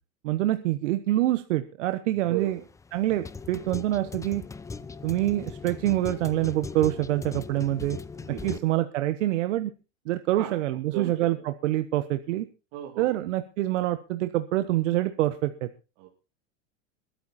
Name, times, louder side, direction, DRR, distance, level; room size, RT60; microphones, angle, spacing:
voice 1, 0.2-2.6 2.9-4.4 5.0-8.0 8.4-9.7 10.0-12.5 13.0-15.7, right 15 dB, 80° right, 11 dB, 1.2 m, -26 dB
voice 2, 2.1-2.7 8.1-8.7 10.4-10.5 10.9-11.2 12.7-13.2 16.0-16.1, right 12 dB, 55° right, 2 dB, 2.7 m, -36 dB
sound 1, 2.4-8.6, left 4 dB, 10° left, 0.6 m, -39 dB
22.0 x 9.2 x 4.2 m, 0.33 s
supercardioid pair, 130°, 36 cm